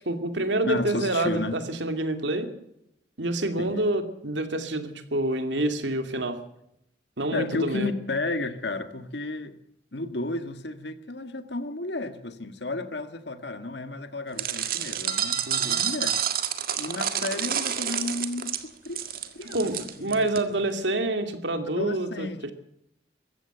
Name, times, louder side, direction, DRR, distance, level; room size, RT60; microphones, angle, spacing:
voice 1, 0.1-2.5 3.2-6.4 7.2-7.9 15.5-15.8 19.5-22.3, right 2 dB, 75° right, 7 dB, 2.5 m, -27 dB
voice 2, 0.6-1.6 3.6-3.9 7.3-9.6 9.9-16.2 16.8-18.5 18.8-19.7 20.0-20.3 21.7-22.5, left 2 dB, 70° left, 9 dB, 1.8 m, -32 dB
sound 1, 14.4-20.4, right 9 dB, 50° right, 1.8 m, -29 dB
21.5 x 15.5 x 8.1 m, 0.80 s
head